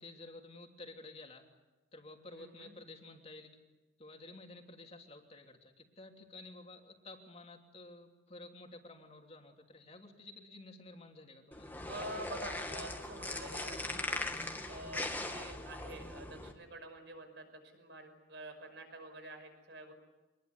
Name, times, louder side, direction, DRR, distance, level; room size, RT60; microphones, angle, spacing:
voice 1, 0.0-1.5 1.9-3.6 4.0-11.7, left 2 dB, 30° left, 2 dB, 3.2 m, -52 dB
voice 2, 2.3-2.7 11.9-14.3 14.7-17.5 17.7-19.9, right 1 dB, 65° right, 7 dB, 5.8 m, -47 dB
sound 1, 11.5-16.5, left 2 dB, 10° left, 2.1 m, -40 dB
25.5 x 21.0 x 9.7 m, 1.2 s
head